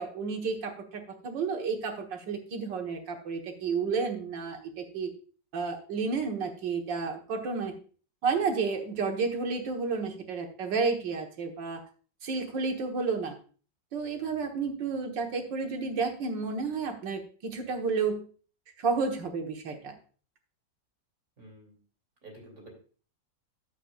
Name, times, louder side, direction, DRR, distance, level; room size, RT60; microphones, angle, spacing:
voice 1, 0.0-5.1 5.5-7.7 8.2-11.8 12.2-13.4 13.9-18.2 18.8-19.9, right 4 dB, 80° right, 3 dB, 2.0 m, -31 dB
voice 2, 21.4-21.8 22.2-22.7, right 1 dB, 55° right, 0 dB, 3.5 m, -49 dB
12.0 x 8.0 x 2.4 m, 0.40 s
omnidirectional pair, 1.9 m